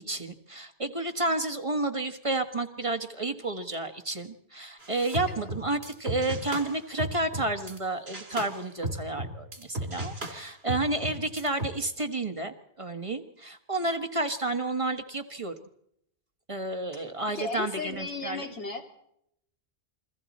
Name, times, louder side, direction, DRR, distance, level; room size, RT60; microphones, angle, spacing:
voice 1, 0.1-15.5 16.5-18.4, right 2 dB, 30° right, 6 dB, 1.4 m, -31 dB
sound 1, 4.8-7.8 8.1-11.7, right 1 dB, 65° right, 3.1 m, -36 dB
voice 2, 16.9-18.8, left 3 dB, 85° left, 3 dB, 3.0 m, -36 dB
29.0 x 22.5 x 4.2 m, 0.74 s
omnidirectional pair, 1.1 m